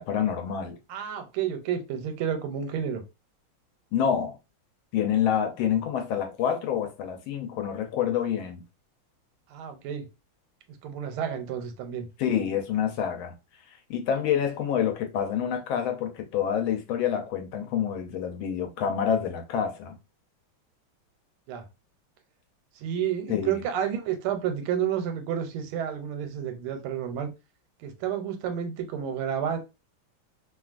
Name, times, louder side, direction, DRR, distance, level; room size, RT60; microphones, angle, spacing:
voice 1, 0.0-0.8 3.9-4.4 4.9-8.6 12.2-13.3 13.9-20.0 23.3-23.6, left 8 dB, 75° left, 1.4 m, -27 dB
voice 2, 0.9-3.0 9.5-10.0 10.8-12.1 21.5-21.7 22.8-27.3 27.8-29.6, right 9 dB, 90° right, 1.5 m, -30 dB
3.4 x 2.4 x 2.4 m
omnidirectional pair, 2.3 m